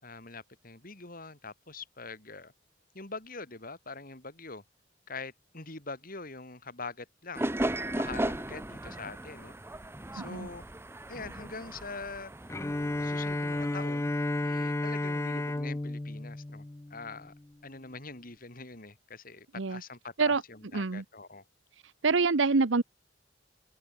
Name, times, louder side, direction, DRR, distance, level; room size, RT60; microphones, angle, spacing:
voice 1, 0.0-2.5 2.9-4.6 5.1-7.6 7.9-9.5 10.1-10.6 11.1-12.3 13.0-17.3 17.6-21.4, left 3 dB, 50° left, 4.3 m, -44 dB
sound 1, 7.3-13.8, right 1 dB, 15° right, 1.0 m, -36 dB
voice 2, 10.2-10.5 19.6-19.8 20.2-20.4 20.7-21.0 21.8-22.8, right 4 dB, 85° right, 0.9 m, -26 dB
Bowed string instrument, 12.5-17.4, left 2 dB, 15° left, 0.4 m, -32 dB
head